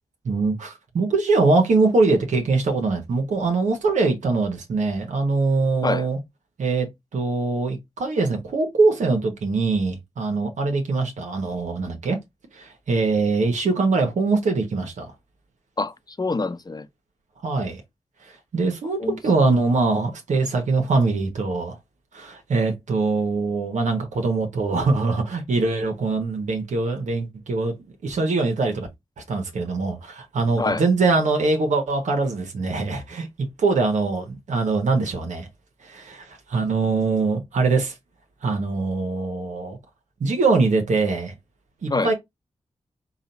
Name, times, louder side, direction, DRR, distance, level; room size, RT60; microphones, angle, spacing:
voice 1, 0.2-6.2 6.6-12.2 12.5-15.1 17.4-17.8 18.2-21.8 22.1-27.7 28.0-28.9 29.2-35.5 35.8-38.0 38.4-39.8 40.2-41.3 41.8-42.1, right 3 dB, 85° right, 1.1 m, -23 dB
voice 2, 15.8-16.9 19.0-19.2 30.6-30.8 41.9-42.1, left 3 dB, 35° left, 0.7 m, -25 dB
4.0 x 2.5 x 4.0 m
cardioid pair, 40°, 12 cm